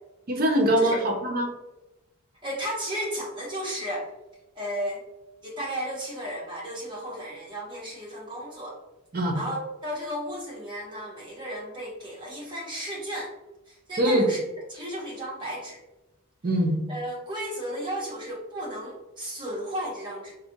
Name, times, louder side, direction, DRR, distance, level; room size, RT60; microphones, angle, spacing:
voice 1, 0.3-1.5 9.1-9.4 14.0-14.3 16.4-16.8, right 1 dB, 40° right, 1 dB, 0.5 m, -23 dB
voice 2, 2.4-4.1 4.6-5.0 5.4-8.8 9.3-13.3 13.7-14.4 14.7-15.8 16.9-20.3, equal, 20° right, -4 dB, 0.9 m, -34 dB
4.1 x 2.1 x 2.6 m, 0.99 s
head